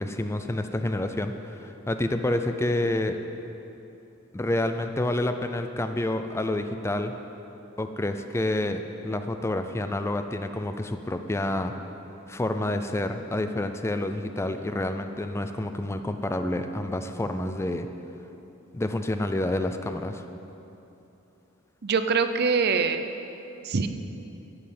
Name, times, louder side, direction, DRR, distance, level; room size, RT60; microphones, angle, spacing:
voice 1, 0.0-3.2 4.3-7.2 7.8-11.8 12.3-17.9 18.7-20.2, left 1 dB, 15° left, 7 dB, 0.4 m, -28 dB
voice 2, 21.8-23.1 23.6-23.9, right 5 dB, 55° right, 9 dB, 0.6 m, -24 dB
12.5 x 5.7 x 8.5 m, 3.0 s
head